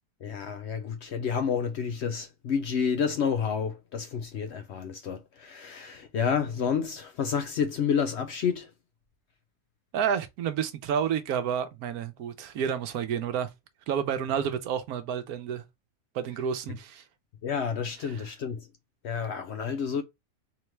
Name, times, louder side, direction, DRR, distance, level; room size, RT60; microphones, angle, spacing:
voice 1, 0.2-8.7 17.4-18.7 19.0-20.0, left 6 dB, 65° left, 0.7 m, -29 dB
voice 2, 9.9-13.5 13.9-15.6 16.1-17.0 18.1-18.2, right 8 dB, 85° right, 1.1 m, -30 dB
3.8 x 3.3 x 3.0 m
omnidirectional pair, 1.5 m